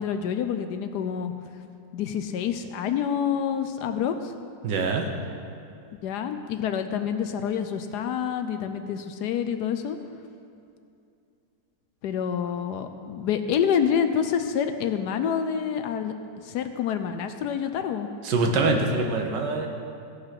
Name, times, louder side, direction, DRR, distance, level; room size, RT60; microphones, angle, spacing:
voice 1, 0.0-1.3 1.9-4.3 6.0-10.0 12.0-16.1 16.4-18.1, left 8 dB, 70° left, 8 dB, 1.1 m, -27 dB
voice 2, 4.6-5.1 18.2-19.7, right 3 dB, 75° right, 3 dB, 1.7 m, -24 dB
16.0 x 5.6 x 5.8 m, 2.5 s
omnidirectional pair, 1.9 m